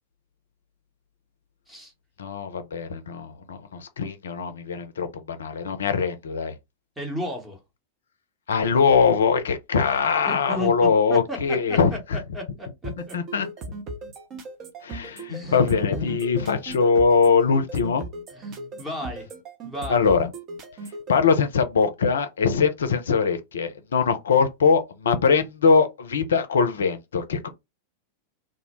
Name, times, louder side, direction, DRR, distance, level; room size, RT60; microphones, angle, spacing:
voice 1, 2.2-6.5 8.5-12.2 13.1-13.5 14.8-18.0 19.9-20.3 21.1-27.5, left 5 dB, 65° left, 0.4 m, -22 dB
voice 2, 7.0-7.6 10.3-13.4 15.3-15.6 15.9-16.2 18.3-19.3 19.6-20.1, left 1 dB, 10° right, 0.8 m, -34 dB
sound 1, 12.8-21.1, right 2 dB, 35° right, 0.6 m, -37 dB
2.1 x 2.0 x 2.9 m
figure-of-eight pair, 90°, 0 cm